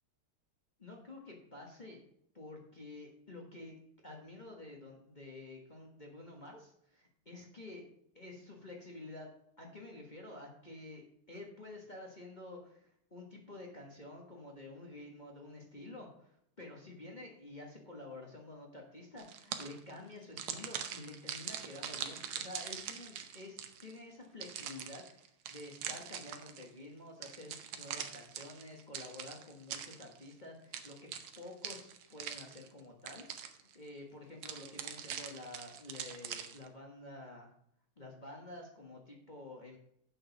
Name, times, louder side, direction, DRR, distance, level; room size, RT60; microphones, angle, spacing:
voice 1, 0.8-2.0 2.3-3.7 4.0-7.8 8.1-9.3 9.6-31.1 31.4-37.5 38.0-39.8, left 2 dB, 25° left, 0 dB, 1.2 m, -50 dB
sound 1, 19.2-19.9 20.4-23.9 24.4-26.7 27.2-30.3 30.7-32.8 33.1-33.8 34.4-36.7, right 8 dB, 75° right, 1.7 m, -43 dB
8.0 x 6.3 x 5.9 m, 0.70 s
omnidirectional pair, 2.3 m